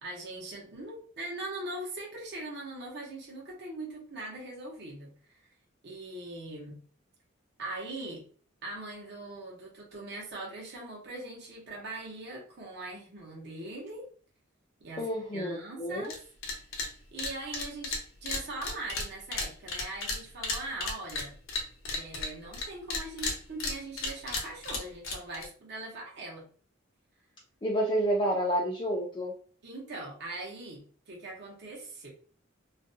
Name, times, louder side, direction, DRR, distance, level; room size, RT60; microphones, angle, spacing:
voice 1, 0.0-5.4 5.8-6.8 7.6-8.2 8.6-14.1 14.8-15.0 15.3-16.2 17.1-21.3 21.9-26.5 29.6-32.1, right 2 dB, 55° right, -3 dB, 0.8 m, -41 dB
voice 2, 15.0-16.1 27.6-29.3, right 1 dB, 25° left, -2 dB, 0.4 m, -29 dB
sound 1, 16.0-16.2 16.4-16.9 17.2-22.7 22.9-25.5, left 3 dB, 90° left, 0.7 m, -33 dB
2.5 x 2.2 x 2.6 m, 0.43 s
head